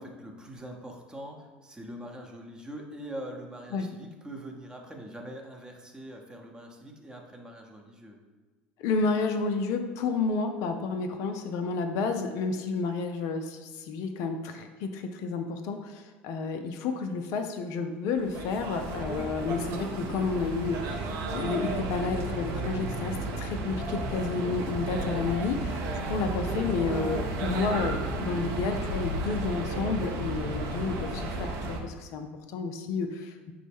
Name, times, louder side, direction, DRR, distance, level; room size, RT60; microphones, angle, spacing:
voice 1, 0.0-8.2, right 1 dB, 15° right, 1 dB, 0.7 m, -43 dB
voice 2, 8.8-33.5, left 4 dB, 55° left, 6 dB, 0.3 m, -31 dB
sound 1, 18.1-31.8, right 2 dB, 55° right, 0.6 m, -33 dB
5.0 x 2.0 x 3.4 m, 1.3 s
hypercardioid pair, 75°, 6 cm